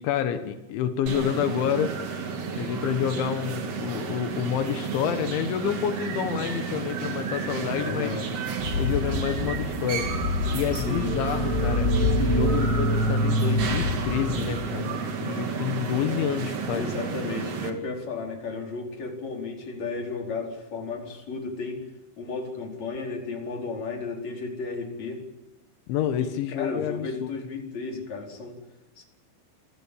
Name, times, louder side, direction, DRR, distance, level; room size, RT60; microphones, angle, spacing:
voice 1, 0.0-1.9 2.6-8.1 8.8-10.1 10.5-14.9 15.2-16.8 25.9-27.3, left 9 dB, 85° left, 8 dB, 3.8 m, -28 dB
sound 1, 1.1-17.7, right 5 dB, 45° right, 2.7 m, -32 dB
voice 2, 7.8-8.3 10.7-11.1 16.8-21.8 22.2-25.2 26.2-28.6 29.0-29.1, left 4 dB, 40° left, 1 dB, 5.6 m, -34 dB
sound 2, 8.6-14.7, left 4 dB, 60° left, 3.9 m, -30 dB
sound 3, 10.7-16.2, right 1 dB, 10° left, 5.0 m, -28 dB
26.5 x 18.0 x 8.6 m, 0.97 s
omnidirectional pair, 5.2 m